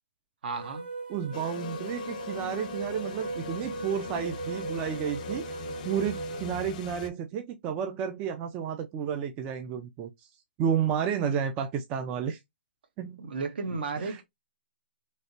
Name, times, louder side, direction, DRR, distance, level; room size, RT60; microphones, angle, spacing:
voice 1, 0.4-0.9 13.2-14.2, right 4 dB, 65° right, 1.0 m, -33 dB
sound 1, 0.5-6.5, right 3 dB, 80° right, 1.5 m, -39 dB
voice 2, 1.1-5.5 5.8-10.1 10.6-12.4 13.0-13.2 14.0-14.2, right 8 dB, 20° right, 0.4 m, -31 dB
sound 2, 1.3-7.1, left 6 dB, 45° left, 0.4 m, -40 dB
3.2 x 2.8 x 2.6 m
hypercardioid pair, 155°, 6 cm